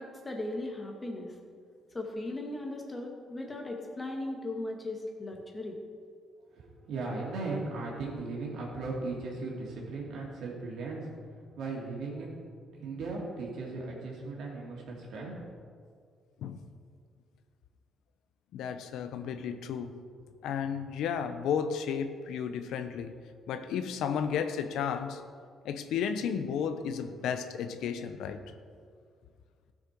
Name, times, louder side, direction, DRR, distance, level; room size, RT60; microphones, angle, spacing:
voice 1, 0.0-1.4 1.9-5.8, left 2 dB, 25° left, 1 dB, 1.8 m, -37 dB
voice 2, 6.5-11.1 11.5-12.4 12.7-15.4, right 3 dB, 80° right, -3 dB, 2.7 m, -37 dB
voice 3, 18.5-20.0 20.4-23.1 23.5-25.2 25.6-28.4, left 7 dB, 85° left, 9 dB, 0.7 m, -33 dB
14.5 x 6.4 x 4.5 m, 2.1 s
cardioid pair, 90°, 0 cm